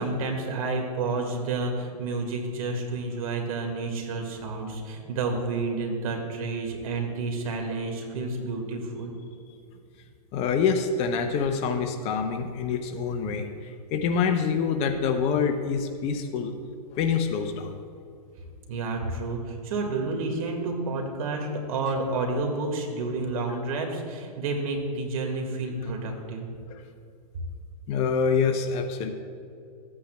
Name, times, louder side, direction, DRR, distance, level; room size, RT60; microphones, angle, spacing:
voice 1, 0.0-9.1 18.7-26.5, right 3 dB, 60° right, 3 dB, 2.0 m, -30 dB
voice 2, 10.3-16.5 16.9-17.8 27.9-29.1, left 6 dB, 30° left, 6 dB, 0.7 m, -26 dB
14.5 x 8.6 x 2.3 m, 2.4 s
hypercardioid pair, 120°, 20 cm